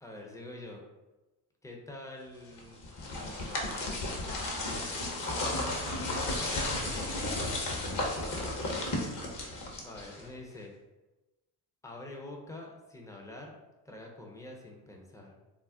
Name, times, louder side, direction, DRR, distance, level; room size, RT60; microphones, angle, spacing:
voice 1, 0.0-0.8 1.6-3.5 5.1-5.3 6.1-7.3 9.8-10.7 11.8-13.5 13.8-15.3, left 2 dB, 5° left, 0 dB, 0.5 m, -46 dB
sound 1, 2.6-10.4, left 2 dB, 40° left, 0.8 m, -34 dB
2.4 x 2.0 x 3.5 m, 1.1 s
hypercardioid pair, 65°, 50 cm